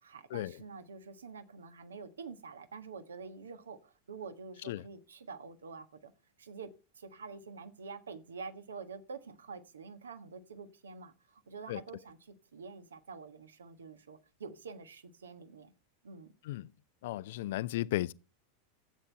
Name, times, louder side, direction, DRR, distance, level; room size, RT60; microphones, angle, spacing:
voice 1, 0.0-6.1 6.4-6.7 6.9-15.7 16.0-16.3, right 5 dB, 70° right, 1.4 m, -47 dB
voice 2, 17.0-18.1, left 15 dB, 55° left, 0.4 m, -35 dB
13.5 x 8.5 x 3.4 m
figure-of-eight pair, 85°, 0 cm